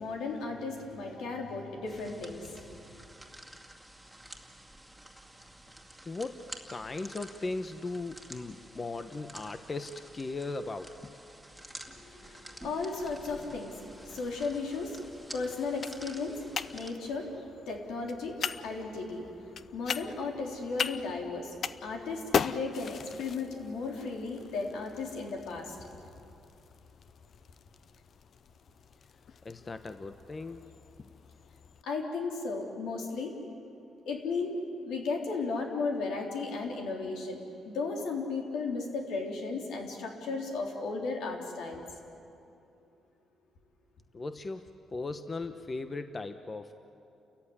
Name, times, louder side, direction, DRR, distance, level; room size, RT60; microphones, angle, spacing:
voice 1, 0.0-2.8 11.9-26.0 31.8-33.3 34.1-34.6 34.8-37.4 37.7-41.8, left 4 dB, 85° left, 1 dB, 3.6 m, -35 dB
sound 1, 1.9-16.9, right 1 dB, 5° right, 2.3 m, -50 dB
voice 2, 6.0-11.1 29.4-30.7 31.0-31.1 44.1-46.7, left 3 dB, 30° left, 9 dB, 0.9 m, -38 dB
sound 2, 13.9-31.8, left 7 dB, 55° left, 0.7 m, -40 dB
29.5 x 14.5 x 9.9 m, 2.8 s
cardioid pair, 90°, 0 cm